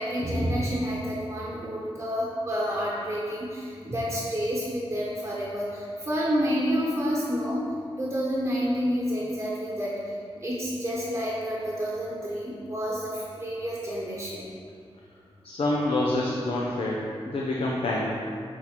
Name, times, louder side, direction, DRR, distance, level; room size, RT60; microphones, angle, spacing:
voice 1, 0.0-7.7 8.0-14.5, equal, 25° right, -6 dB, 1.0 m, -29 dB
voice 2, 15.4-18.1, left 2 dB, 65° left, -4 dB, 0.7 m, -27 dB
6.5 x 4.0 x 4.4 m, 2.2 s
wide cardioid pair, 115°, 10 cm